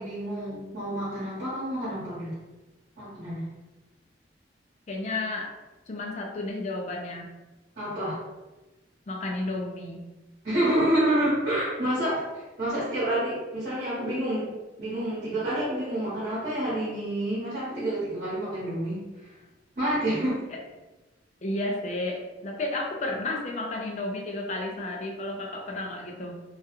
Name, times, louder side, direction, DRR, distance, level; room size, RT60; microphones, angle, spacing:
voice 1, 0.0-2.3 3.0-3.5 7.8-8.2 10.4-14.5 14.8-19.0 19.8-20.4, right 1 dB, 55° right, -9 dB, 0.9 m, -28 dB
voice 2, 4.9-5.6 5.9-7.3 9.1-10.0 20.5-20.6 21.4-26.4, left 2 dB, 40° left, 1 dB, 0.4 m, -32 dB
2.3 x 2.1 x 2.9 m, 1.1 s
head